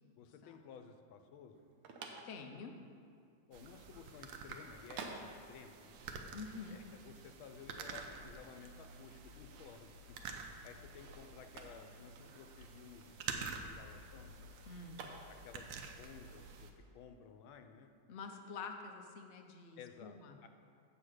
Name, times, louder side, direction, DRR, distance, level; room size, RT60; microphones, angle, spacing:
voice 1, 0.2-1.6 3.5-6.0 6.7-10.2 10.6-14.3 15.3-17.9 19.8-20.5, left 7 dB, 85° left, 7 dB, 1.5 m, -55 dB
sound 1, 1.5-15.7, right 4 dB, 90° right, 1.7 m, -53 dB
voice 2, 2.2-2.8 6.3-6.8 14.7-15.0 18.1-20.5, left 4 dB, 65° left, 4 dB, 0.6 m, -48 dB
sound 2, 3.5-16.7, right 5 dB, 75° right, 1.4 m, -49 dB
7.9 x 6.6 x 6.3 m, 2.4 s
omnidirectional pair, 2.2 m